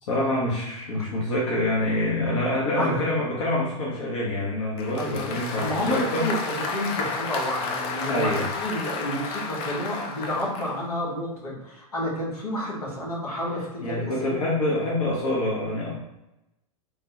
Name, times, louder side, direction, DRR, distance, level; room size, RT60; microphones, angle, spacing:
voice 1, 0.0-6.3 8.1-8.4 13.8-15.9, left 1 dB, 55° left, -5 dB, 0.9 m, -26 dB
Applause, 4.8-10.8, left 4 dB, 30° left, 0.4 m, -32 dB
voice 2, 5.0-5.3 5.6-14.4, equal, 80° left, -5 dB, 1.3 m, -30 dB
3.3 x 2.2 x 3.1 m, 0.92 s
figure-of-eight pair, 100°, 19 cm